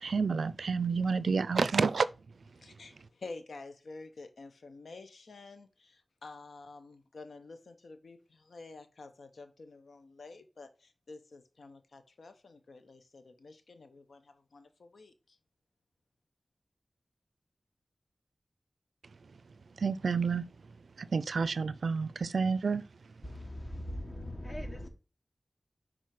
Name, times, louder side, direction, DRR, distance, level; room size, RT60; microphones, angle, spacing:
voice 1, 0.0-2.1 19.8-20.5 21.0-22.8, right 5 dB, 85° right, 0.4 m, -29 dB
voice 2, 2.5-15.4, left 3 dB, 80° left, 0.8 m, -50 dB
voice 3, 23.2-24.9, equal, 25° left, 1.4 m, -40 dB
5.9 x 3.8 x 4.7 m
wide cardioid pair, 65°, 0 cm